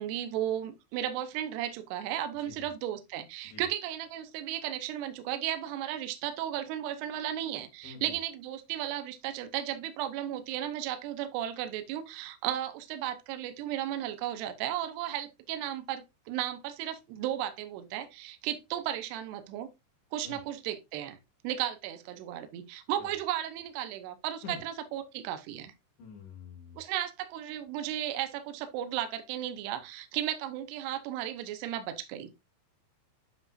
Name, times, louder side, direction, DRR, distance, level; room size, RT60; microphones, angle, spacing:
voice 1, 0.0-19.7 20.1-21.2 21.4-25.7 26.8-32.3, right 11 dB, 80° right, 2.5 m, -35 dB
voice 2, 7.8-8.2 20.2-20.4 23.0-23.1 24.4-24.6 26.0-26.8, left 5 dB, 70° left, 4.4 m, -46 dB
9.8 x 5.8 x 2.5 m
omnidirectional pair, 5.5 m